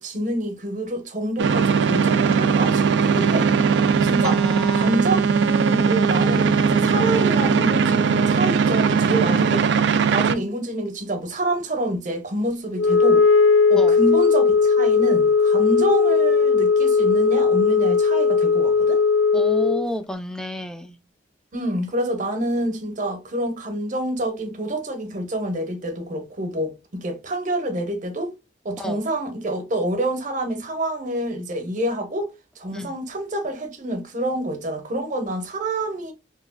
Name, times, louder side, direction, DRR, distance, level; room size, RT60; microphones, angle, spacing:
voice 1, 0.0-3.5 4.0-4.4 4.7-9.7 10.1-13.3 13.7-19.0 21.5-28.3 28.6-36.1, right 1 dB, 45° right, 0.8 m, -27 dB
sound 1, 1.4-10.3, right 6 dB, 70° right, 0.3 m, -19 dB
voice 2, 4.2-5.0 13.8-14.0 19.3-20.9 28.8-29.0 32.7-33.0, equal, 5° left, 0.3 m, -30 dB
Wind instrument woodwind instrument, 12.7-19.9, left 5 dB, 75° left, 0.4 m, -17 dB
2.9 x 2.3 x 2.2 m
head